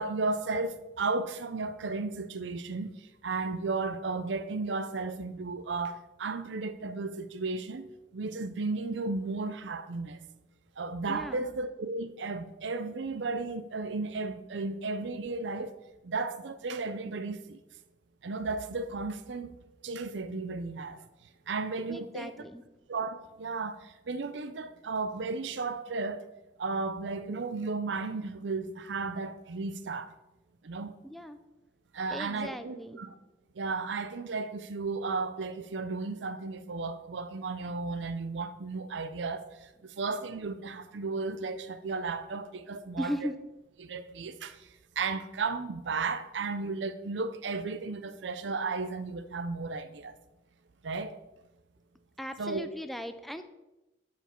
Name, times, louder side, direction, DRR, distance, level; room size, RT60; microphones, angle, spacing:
voice 1, 0.0-2.9 3.2-7.9 8.1-10.2 10.8-15.7 16.0-17.6 18.2-19.6 19.8-21.0 21.5-22.3 22.9-26.2 26.6-30.1 30.6-30.9 31.9-33.1 33.6-43.3 43.8-44.6 45.0-50.2 50.8-51.2 52.4-52.7, right 3 dB, 75° right, 0.5 m, -34 dB
voice 2, 11.1-11.5 21.9-22.6 31.0-31.4 32.1-33.0 43.0-43.3 52.2-53.4, equal, ahead, 0.4 m, -37 dB
12.0 x 4.9 x 4.4 m
head